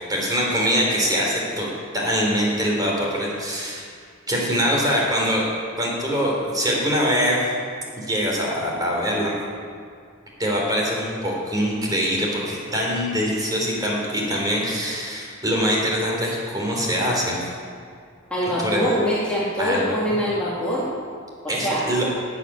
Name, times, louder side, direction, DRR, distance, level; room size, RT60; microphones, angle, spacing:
voice 1, 0.1-1.7 1.9-3.9 4.3-5.4 5.8-7.4 8.0-9.3 10.4-17.4 18.6-18.8 19.6-20.0 21.5-22.1, equal, 20° right, -3 dB, 3.6 m, -23 dB
voice 2, 18.3-20.9 21.4-21.9, equal, 5° left, -8 dB, 2.5 m, -24 dB
13.5 x 8.5 x 9.8 m, 2.2 s
head